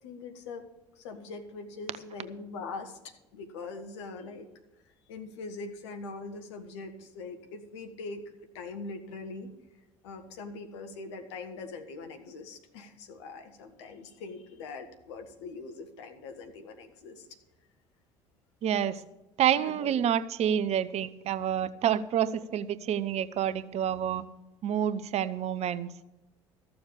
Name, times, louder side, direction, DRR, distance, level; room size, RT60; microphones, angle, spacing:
voice 1, 0.0-0.7 0.9-4.5 5.1-8.2 8.5-9.5 10.0-17.3 19.6-19.9, left 3 dB, 70° left, 6 dB, 1.6 m, -42 dB
voice 2, 18.6-19.0 19.4-24.2 24.6-25.9, right 9 dB, 45° right, 15 dB, 0.8 m, -28 dB
14.5 x 6.9 x 7.1 m, 1.0 s
figure-of-eight pair, 60°, 15 cm